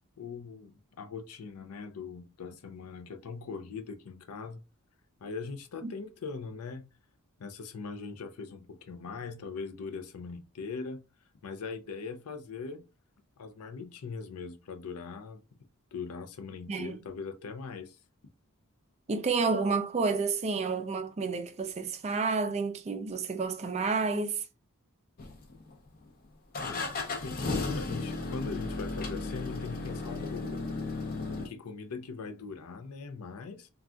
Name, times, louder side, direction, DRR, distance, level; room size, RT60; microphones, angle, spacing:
voice 1, 0.2-4.6 5.2-6.9 7.4-11.0 11.4-12.8 13.4-15.4 15.9-18.0 26.6-26.9 27.2-30.8 31.4-33.7, left 4 dB, 85° left, 0.5 m, -41 dB
voice 2, 16.7-17.0 19.1-24.4, right 4 dB, 30° right, 0.3 m, -30 dB
sound 1, 25.2-25.9 26.5-31.5, left 3 dB, 40° left, 0.6 m, -34 dB
3.7 x 2.3 x 2.3 m
head